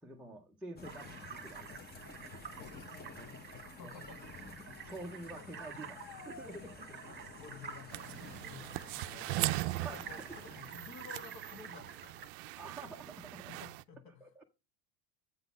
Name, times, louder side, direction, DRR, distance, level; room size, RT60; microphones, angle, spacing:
voice 1, 0.0-1.8 3.2-3.3 3.7-4.1 4.6-7.1 9.8-10.2 12.6-13.5 14.2-14.4, right 2 dB, 5° right, 0.5 m, -48 dB
sound 1, 0.8-10.6, left 4 dB, 20° left, 0.9 m, -51 dB
sound 2, 0.8-12.3, right 7 dB, 25° right, 1.2 m, -50 dB
voice 2, 2.5-4.5 5.3-5.5 7.0-12.3 13.5-14.4, left 6 dB, 50° left, 1.4 m, -54 dB
sound 3, 7.9-13.8, right 18 dB, 65° right, 0.5 m, -40 dB
8.1 x 3.9 x 5.3 m
supercardioid pair, 125°, 46 cm